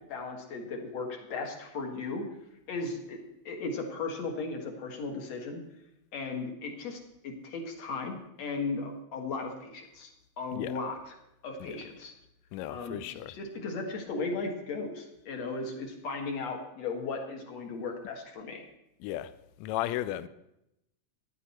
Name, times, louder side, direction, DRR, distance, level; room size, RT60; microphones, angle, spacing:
voice 1, 0.1-2.3 2.7-3.2 3.5-5.6 6.1-10.1 10.4-11.2 11.4-12.1 12.7-18.7, left 3 dB, 60° left, 2.8 m, -36 dB
voice 2, 12.5-13.4 19.0-19.3 19.6-20.3, left 13 dB, 80° left, 1.8 m, -34 dB
15.0 x 10.5 x 4.4 m
omnidirectional pair, 3.4 m